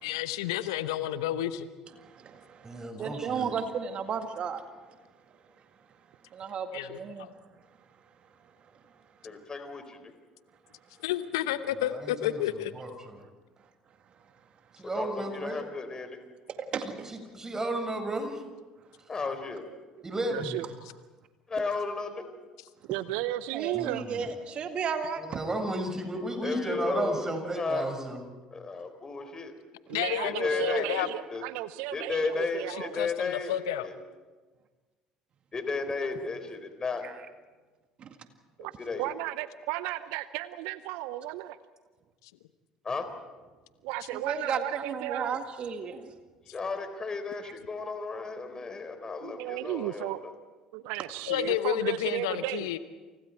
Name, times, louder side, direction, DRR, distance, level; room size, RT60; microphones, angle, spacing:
voice 1, 0.0-1.7 6.7-7.3 11.0-12.7 29.9-31.1 32.7-33.9 51.3-52.8, left 12 dB, 75° left, 13 dB, 0.9 m, -31 dB
voice 2, 2.0-4.6 6.3-7.3 16.7-17.1 23.5-25.4 36.1-36.3 37.0-37.2 38.0-38.1 44.1-46.1 47.4-47.5, right 6 dB, 45° right, 7 dB, 2.0 m, -34 dB
voice 3, 2.6-3.5 11.9-12.4 12.7-13.2 14.8-15.6 17.1-18.4 20.0-20.6 23.8-24.3 25.4-28.4, right 1 dB, 20° right, 5 dB, 5.8 m, -33 dB
voice 4, 9.2-10.1 14.9-16.2 19.1-19.6 21.5-22.3 26.4-27.3 27.6-27.9 28.5-29.5 30.2-31.1 31.3-31.4 31.9-33.9 35.5-37.1 38.8-39.1 42.8-43.1 46.5-50.1, left 4 dB, 30° left, 8 dB, 4.2 m, -33 dB
voice 5, 20.3-20.7 22.9-24.0 29.9-33.0 38.6-38.7 39.0-41.6 43.8-45.4 49.2-50.2 50.7-52.7, right 15 dB, 65° right, 15 dB, 0.7 m, -34 dB
29.0 x 28.5 x 4.6 m, 1.3 s
hypercardioid pair, 60°, 3 cm